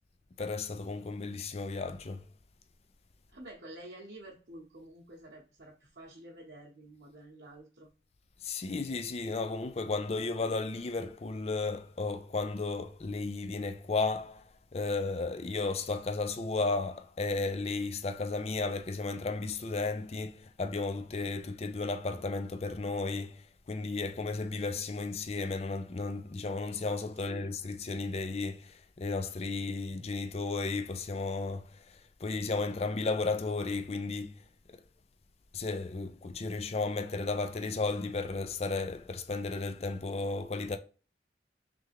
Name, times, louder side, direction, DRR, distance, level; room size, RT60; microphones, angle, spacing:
voice 1, 0.4-2.2 8.4-34.3 34.7-34.8 35.5-40.8, left 3 dB, 35° left, 0.4 m, -34 dB
voice 2, 3.3-7.9 27.2-27.5, right 1 dB, 60° right, 0.9 m, -49 dB
3.4 x 3.3 x 3.4 m
head